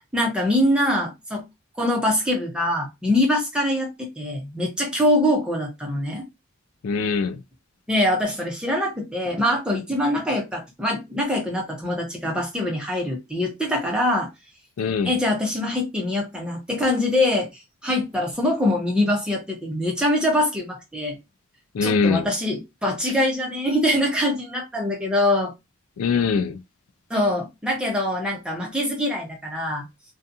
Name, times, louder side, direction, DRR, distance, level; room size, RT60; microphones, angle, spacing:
voice 1, 0.1-1.4 1.8-6.3 7.9-14.3 15.0-21.2 21.8-25.5 27.1-29.8, left 1 dB, 5° right, 0.8 m, -23 dB
voice 2, 6.8-7.4 14.8-15.1 21.7-22.3 26.0-26.6, left 5 dB, 75° left, 0.4 m, -22 dB
2.4 x 2.4 x 2.7 m
head